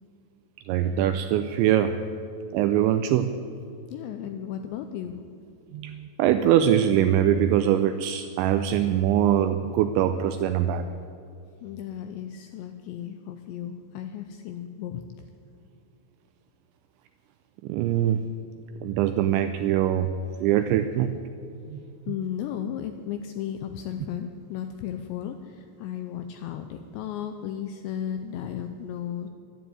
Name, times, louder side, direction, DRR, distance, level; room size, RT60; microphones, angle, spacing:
voice 1, 0.7-2.0 2.5-3.3 5.7-10.8 17.6-18.2 18.8-20.1 20.4-21.2 21.7-21.8, right 10 dB, 85° right, 9 dB, 2.6 m, -23 dB
voice 2, 3.9-5.2 11.6-15.0 22.1-25.4 25.8-29.3, left 9 dB, 85° left, 7 dB, 2.5 m, -34 dB
12.0 x 12.0 x 9.3 m, 2.5 s
omnidirectional pair, 5.8 m